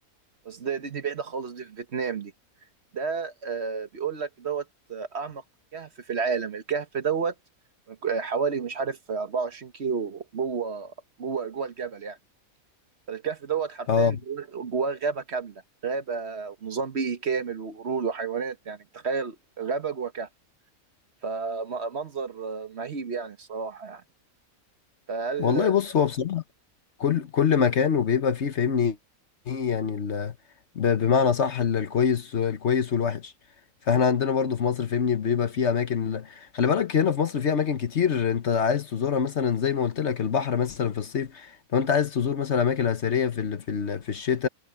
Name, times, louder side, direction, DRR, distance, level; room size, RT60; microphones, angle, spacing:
voice 1, 0.4-2.3 2.9-5.4 5.7-7.3 7.9-10.9 11.2-12.2 13.1-20.3 21.2-24.0 25.1-25.7, right 5 dB, 50° right, 1.3 m, -31 dB
voice 2, 13.9-14.2 25.4-26.4 27.0-29.0 29.5-30.3 30.7-33.3 33.9-44.5, left 7 dB, 55° left, 1.2 m, -24 dB
omnidirectional pair, 1.5 m